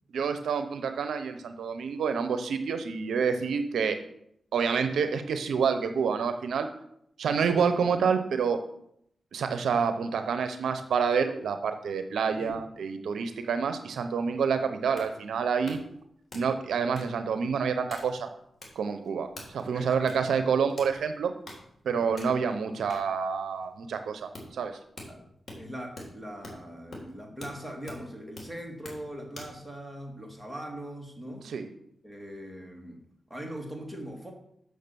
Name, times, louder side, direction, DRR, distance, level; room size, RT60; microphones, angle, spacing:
voice 1, 0.1-4.0 4.5-6.7 7.2-8.6 9.3-15.8 16.3-18.3 18.8-21.3 21.8-24.8 31.4-31.7, right 6 dB, 90° right, 8 dB, 0.7 m, -28 dB
sound 1, 14.5-29.6, left 1 dB, 40° left, 3.7 m, -47 dB
voice 2, 19.7-20.1 21.9-22.1 25.1-25.3 25.6-31.5 32.0-33.0 33.3-34.3, equal, 5° right, 0 dB, 2.6 m, -41 dB
6.6 x 6.5 x 6.8 m, 0.73 s
cardioid pair, 55°, 0 cm